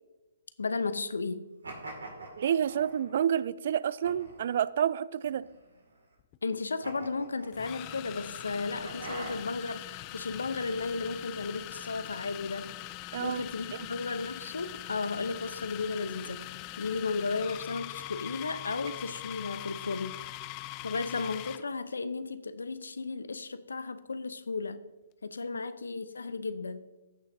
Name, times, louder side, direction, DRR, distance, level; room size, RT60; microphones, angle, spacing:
voice 1, 0.6-1.5 6.4-12.7 13.2-20.2 20.8-24.8 25.2-26.9, left 4 dB, 80° left, 0.6 m, -34 dB
sound 1, 1.6-3.2 4.0-4.6 5.2-6.0 6.8-8.0 8.8-9.7, right 2 dB, 80° right, 2.2 m, -44 dB
voice 2, 2.4-5.5 13.1-13.4 13.7-13.9, right 9 dB, 55° right, 0.3 m, -29 dB
sound 2, 6.2-6.4 7.5-21.7, left 17 dB, 30° left, 0.3 m, -42 dB
15.5 x 6.4 x 2.7 m
figure-of-eight pair, 130°, 0 cm